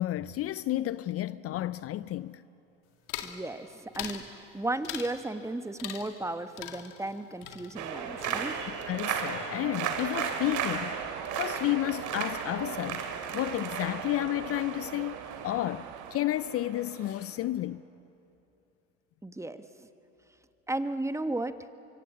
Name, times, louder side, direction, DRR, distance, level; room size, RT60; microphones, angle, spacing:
voice 1, 0.0-2.4 8.9-11.1 11.3-13.1 13.3-17.9, left 14 dB, 45° left, 0.5 m, -31 dB
sound 1, 3.1-3.4 3.9-4.3 4.8-5.2 5.8-6.3 6.6-8.9 9.1-9.7 10.0-10.5, left 11 dB, 70° left, 2.2 m, -42 dB
voice 2, 3.2-8.6 19.2-19.9 20.7-21.6, right 2 dB, 10° right, 1.2 m, -35 dB
sound 2, 7.8-17.4, right 7 dB, 60° right, 2.9 m, -35 dB
sound 3, 9.7-16.1, right 10 dB, 80° right, 1.6 m, -46 dB
24.5 x 24.0 x 8.5 m
hypercardioid pair, 80°, 33 cm